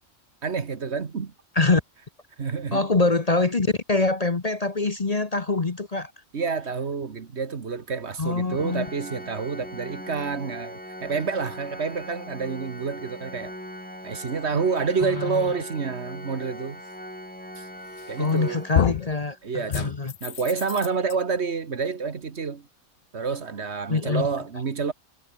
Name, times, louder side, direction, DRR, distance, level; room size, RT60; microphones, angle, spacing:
voice 1, 0.4-1.3 2.4-2.9 6.3-13.5 14.0-16.8 17.6-17.7 18.1-18.6 19.4-22.7 23.1-24.9, right 5 dB, 55° right, 1.7 m, -28 dB
voice 2, 2.7-6.1 8.2-8.9 15.0-15.4 18.2-20.1 23.9-24.3, left 3 dB, 30° left, 1.2 m, -24 dB
Organ, 8.5-19.4, equal, 5° left, 6.0 m, -40 dB
sound 1, 18.0-18.4 18.7-19.1 19.7-21.1, left 11 dB, 60° left, 0.6 m, -27 dB
omnidirectional pair, 1.4 m